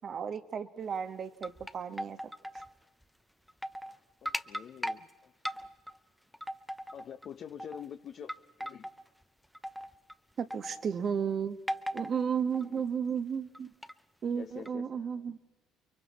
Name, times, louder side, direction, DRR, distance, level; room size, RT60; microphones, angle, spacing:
voice 1, 0.0-2.2 10.4-11.6 11.9-13.7 14.2-15.4, right 7 dB, 50° right, 9 dB, 1.3 m, -33 dB
sound 1, 1.1-2.7 3.0-3.1 3.5-4.0 4.3-5.0 5.4-6.0 6.3-7.3 7.6-7.9 8.3-9.0 9.5-10.1 10.5-10.9 11.7-12.2 12.5-12.9 13.5-13.9 14.7-14.8, equal, ahead, 0.7 m, -38 dB
voice 2, 4.2-5.3 6.9-8.3 8.6-8.9 12.5-12.8 14.3-15.3, left 8 dB, 55° left, 7 dB, 0.8 m, -46 dB
29.5 x 22.5 x 4.2 m, 1.2 s
supercardioid pair, 75°, 0 cm